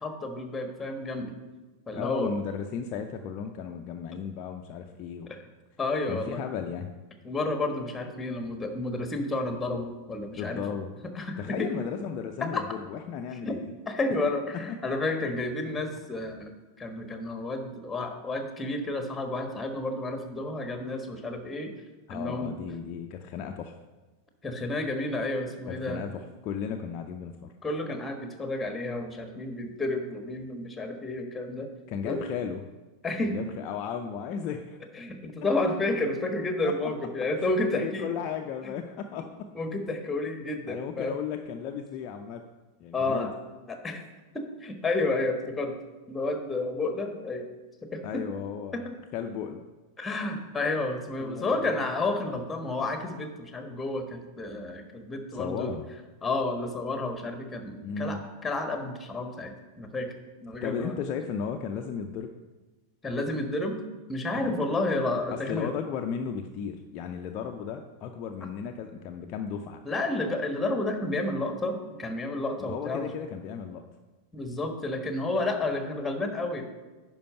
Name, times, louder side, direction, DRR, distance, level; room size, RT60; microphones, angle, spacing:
voice 1, 0.0-1.3 1.9-2.3 5.3-5.4 5.8-6.4 7.2-10.6 11.1-11.7 12.4-12.6 13.4-13.6 13.9-21.7 22.1-22.5 24.4-26.1 27.6-31.7 32.0-32.2 33.0-33.4 34.9-38.1 39.5-41.2 42.9-43.3 43.7-44.0 44.3-45.8 46.1-47.5 47.9-48.2 48.7-48.9 50.0-55.8 56.2-60.1 60.4-60.9 63.0-63.8 64.1-65.7 69.8-73.1 74.3-76.6, left 2 dB, 10° left, 5 dB, 1.3 m, -31 dB
voice 2, 1.9-5.3 6.1-6.9 10.4-10.9 11.4-13.7 22.1-23.8 25.7-27.5 31.9-32.6 33.2-34.8 36.6-36.9 37.8-39.5 40.7-42.4 42.8-43.3 48.0-48.8 49.1-49.6 51.2-51.8 55.3-55.9 57.8-58.3 60.6-62.3 64.4-64.6 65.3-69.8 72.7-73.8, left 7 dB, 40° left, 4 dB, 0.5 m, -35 dB
10.5 x 4.6 x 5.6 m, 1.2 s
figure-of-eight pair, 90°, 0 cm